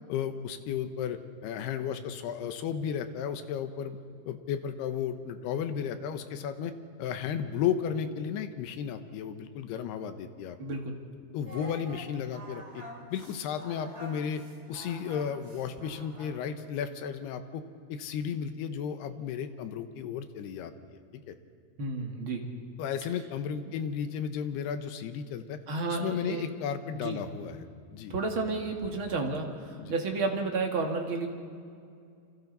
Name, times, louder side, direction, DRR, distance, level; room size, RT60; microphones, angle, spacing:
voice 1, 0.1-4.0 4.3-6.7 7.0-10.6 11.3-12.8 13.1-14.4 14.7-17.6 17.9-21.0 21.3-21.4 22.8-25.6 25.9-27.7 27.9-28.1 29.8-30.0, left 8 dB, 90° left, 9 dB, 3.1 m, -34 dB
voice 2, 10.6-11.0 21.8-22.5 23.7-23.8 25.7-26.4 26.9-27.2 28.1-31.3, right 3 dB, 40° right, 2 dB, 2.0 m, -31 dB
Singing, 11.4-16.5, right 1 dB, 20° right, 2.4 m, -47 dB
28.5 x 26.0 x 4.1 m, 2.4 s
omnidirectional pair, 4.6 m